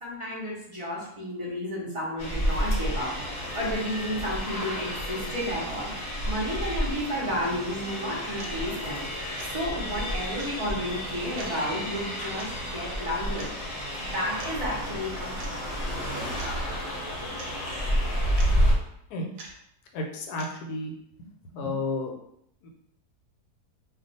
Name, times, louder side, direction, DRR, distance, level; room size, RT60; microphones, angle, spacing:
voice 1, 0.0-3.1 3.5-9.1 9.4-13.5 14.0-15.8 16.0-16.7, equal, 40° right, -6 dB, 0.4 m, -32 dB
sound 1, 2.2-18.7, equal, 45° left, 0.8 m, -30 dB
sound 2, 7.4-7.5 8.4-8.6 9.4-9.5 10.4-10.5 11.4-11.5 12.4-12.5 13.4-13.5 14.4-14.5 15.4-15.5 16.4-16.5 17.4-17.5 18.4-18.5 19.4-19.5 20.4-20.5, right 3 dB, 70° right, 0.9 m, -43 dB
voice 2, 19.9-20.9 21.5-22.1 22.6-22.7, left 2 dB, 80° left, 1 dB, 1.1 m, -31 dB
2.5 x 2.3 x 4.0 m, 0.75 s
omnidirectional pair, 1.7 m